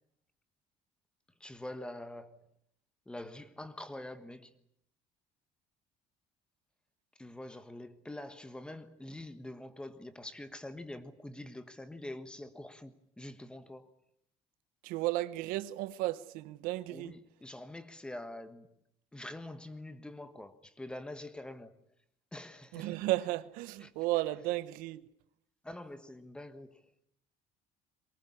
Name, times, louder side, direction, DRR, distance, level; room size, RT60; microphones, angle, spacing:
voice 1, 1.4-2.4 3.1-4.6 7.2-13.9 16.9-18.7 19.1-21.7 22.3-23.0 23.8-23.9 25.6-26.9, left 1 dB, 5° left, 1.3 m, -45 dB
voice 2, 14.8-17.1 22.7-25.0, right 17 dB, 85° right, 1.1 m, -34 dB
23.5 x 19.0 x 9.9 m
cardioid pair, 160°, 14 cm